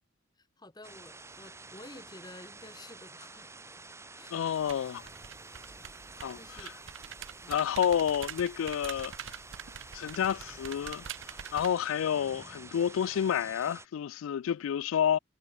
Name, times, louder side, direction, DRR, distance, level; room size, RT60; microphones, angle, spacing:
voice 1, 0.4-3.7 4.1-4.8 6.3-6.7 7.4-7.6, left 2 dB, 20° left, 2.4 m, -51 dB
sound 1, 0.8-13.9, right 3 dB, 15° right, 2.0 m, -49 dB
voice 2, 4.3-5.0 6.2-6.7 7.5-9.1 9.9-11.1 11.5-15.2, left 9 dB, 80° left, 0.3 m, -29 dB
sound 2, 4.5-11.7, right 8 dB, 70° right, 0.8 m, -45 dB
head